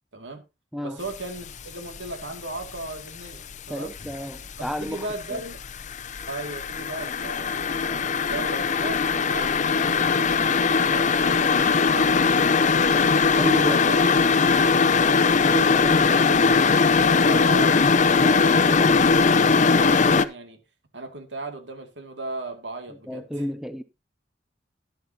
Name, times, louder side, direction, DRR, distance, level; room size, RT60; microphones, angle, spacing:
voice 1, 0.8-3.9 4.6-5.6 6.3-12.4 13.6-14.0 17.0-20.6 20.9-23.5, right 2 dB, 85° right, 2.4 m, -37 dB
sound 1, 1.2-1.6 1.9-3.5 3.9-20.2, left 5 dB, 45° left, 0.6 m, -20 dB
voice 2, 3.7-5.0 5.3-5.4 13.3-14.0 15.4-16.7 17.1-17.2 23.1-23.8, equal, 5° right, 0.7 m, -31 dB
12.5 x 10.5 x 2.8 m
head